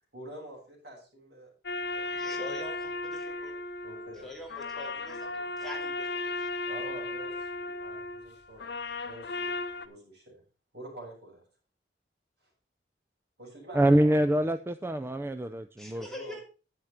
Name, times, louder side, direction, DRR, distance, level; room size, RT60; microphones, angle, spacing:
voice 1, 0.1-1.5 1.8-2.4 3.8-4.3 6.7-9.5 9.8-10.4 10.7-11.4 13.4-14.5 16.0-16.4, right 1 dB, 65° right, -2 dB, 7.0 m, -47 dB
sound 1, 1.6-9.9, left 3 dB, 65° left, 0.9 m, -36 dB
voice 2, 2.1-3.5 4.2-6.5 15.8-16.4, left 1 dB, ahead, -1 dB, 2.7 m, -44 dB
voice 3, 13.7-16.1, right 1 dB, 15° right, 11 dB, 0.4 m, -25 dB
11.0 x 9.4 x 4.3 m, 0.34 s
head